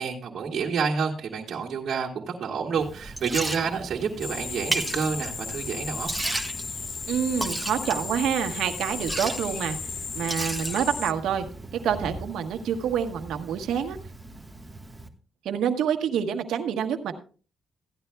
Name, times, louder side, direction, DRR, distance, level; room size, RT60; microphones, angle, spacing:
voice 1, 0.0-6.1, right 6 dB, 60° right, -3 dB, 1.7 m, -29 dB
Liquid, 2.7-15.1, right 2 dB, 10° right, 1.3 m, -36 dB
sound 1, 4.2-11.1, left 5 dB, 45° left, 0.6 m, -35 dB
voice 2, 7.1-9.8 10.1-11.4 11.7-14.0 15.4-17.2, right 8 dB, 85° right, 7 dB, 1.2 m, -27 dB
15.5 x 11.0 x 2.3 m, 0.37 s
cardioid pair, 100°, 0 cm